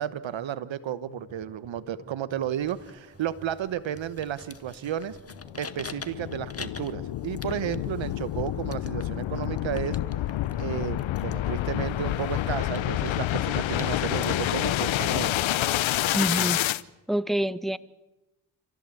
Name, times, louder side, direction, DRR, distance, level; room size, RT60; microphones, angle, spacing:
voice 1, 0.0-5.2 5.6-10.0 10.6-15.4, right 10 dB, 70° right, 16 dB, 1.2 m, -32 dB
sound 1, 1.1-15.8, right 1 dB, 15° right, 7.6 m, -52 dB
sound 2, 2.6-14.4, left 4 dB, 30° left, 1.8 m, -46 dB
sound 3, 5.3-16.8, left 14 dB, 80° left, 0.8 m, -28 dB
voice 2, 16.1-16.6 17.1-17.8, equal, ahead, 16 dB, 1.0 m, -26 dB
27.5 x 15.5 x 8.5 m, 1.0 s
supercardioid pair, 50°, 46 cm